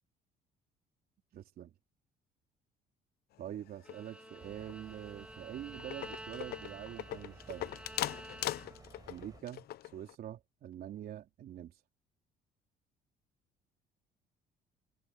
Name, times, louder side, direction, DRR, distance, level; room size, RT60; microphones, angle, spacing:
voice 1, 1.3-1.7 3.4-7.7 9.1-9.7 9.9-11.7, right 11 dB, 60° right, 3.5 m, -45 dB
sound 1, 3.7-4.4 4.7-5.0 5.4-5.5 5.7-10.2, left 14 dB, 70° left, 0.8 m, -40 dB
Bowed string instrument, 3.8-9.0, right 1 dB, 5° right, 3.4 m, -51 dB
sound 2, 4.4-9.4, right 4 dB, 20° right, 4.8 m, -56 dB
cardioid pair, 110°, 17 cm